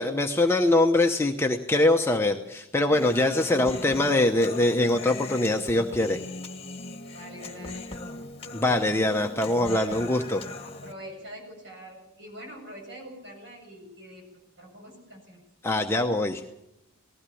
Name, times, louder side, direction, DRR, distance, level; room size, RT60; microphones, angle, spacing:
voice 1, 0.0-6.2 8.5-10.4 15.6-16.4, left 2 dB, 10° left, 3 dB, 0.8 m, -23 dB
Human voice, 2.9-10.9, left 2 dB, 25° left, 1.5 m, -39 dB
voice 2, 7.1-8.2 10.6-15.4, equal, 50° right, 0 dB, 7.6 m, -45 dB
20.0 x 15.5 x 8.5 m, 0.88 s
head